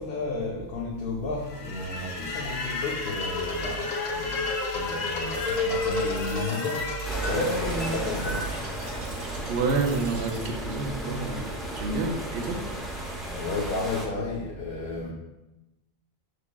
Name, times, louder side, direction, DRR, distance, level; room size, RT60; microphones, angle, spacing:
voice 1, 0.0-8.5 13.0-15.1, left 3 dB, 80° left, -2 dB, 0.9 m, -32 dB
sound 1, 1.5-9.6, left 3 dB, 50° left, 0.7 m, -31 dB
sound 2, 5.3-10.5, right 1 dB, 45° right, 1.1 m, -44 dB
sound 3, 7.0-14.1, right 1 dB, ahead, 0.4 m, -35 dB
voice 2, 9.5-12.6, right 3 dB, 70° right, 3 dB, 0.8 m, -29 dB
5.8 x 3.2 x 2.2 m, 0.98 s
omnidirectional pair, 1.0 m